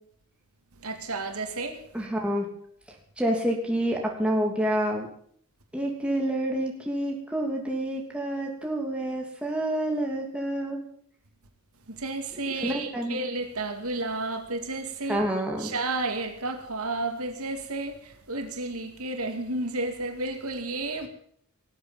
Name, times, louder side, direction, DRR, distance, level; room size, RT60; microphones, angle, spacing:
voice 1, 0.8-1.8 11.9-15.2 15.6-21.1, right 2 dB, 80° right, 2.3 m, -32 dB
voice 2, 1.9-2.5 3.2-5.1 5.7-10.8 12.6-13.2 15.1-15.7, right 1 dB, 5° right, 2.8 m, -28 dB
19.0 x 8.1 x 8.9 m
head